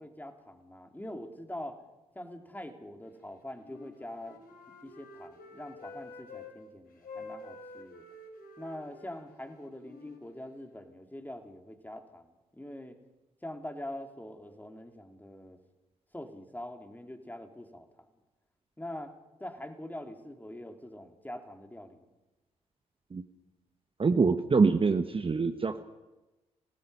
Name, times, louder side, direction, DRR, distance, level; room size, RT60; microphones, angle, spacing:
voice 1, 0.0-1.8 2.1-4.4 4.8-8.0 8.6-13.0 13.4-15.6 16.1-17.9 18.8-19.1 19.4-22.1, left 1 dB, 10° left, 5 dB, 3.1 m, -44 dB
Wind instrument woodwind instrument, 3.6-6.5 7.0-10.9, left 3 dB, 55° left, 4.7 m, -49 dB
voice 2, 24.0-25.8, right 4 dB, 30° right, 9 dB, 1.2 m, -25 dB
25.5 x 18.0 x 5.6 m, 1.1 s
hypercardioid pair, 40°, 17 cm